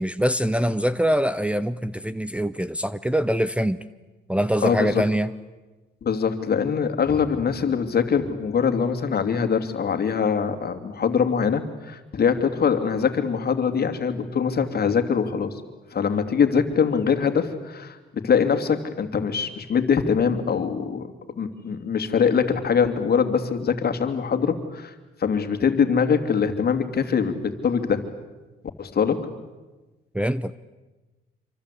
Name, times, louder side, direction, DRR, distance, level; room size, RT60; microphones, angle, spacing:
voice 1, 0.0-3.8 4.3-5.3 30.1-30.5, equal, 5° right, 0.8 m, -24 dB
voice 2, 4.6-5.0 6.0-15.5 15.9-24.9 25.2-28.0 28.8-29.3, left 6 dB, 50° left, 2.9 m, -23 dB
27.0 x 24.5 x 8.5 m
cardioid pair, 90°, 20 cm